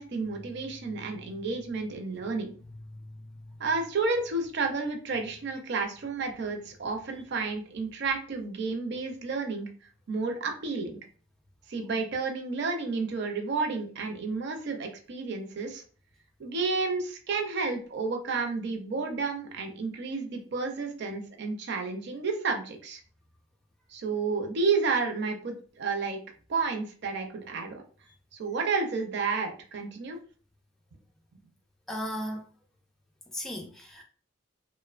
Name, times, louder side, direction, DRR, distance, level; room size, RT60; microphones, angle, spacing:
voice 1, 0.0-2.5 3.6-9.7 10.1-11.0 11.7-15.8 16.4-23.0 23.9-26.2 26.5-27.8 28.4-30.2, right 4 dB, 55° right, 0.5 m, -31 dB
voice 2, 31.9-32.4 33.3-34.0, equal, ahead, 0.3 m, -36 dB
2.7 x 2.1 x 2.4 m
head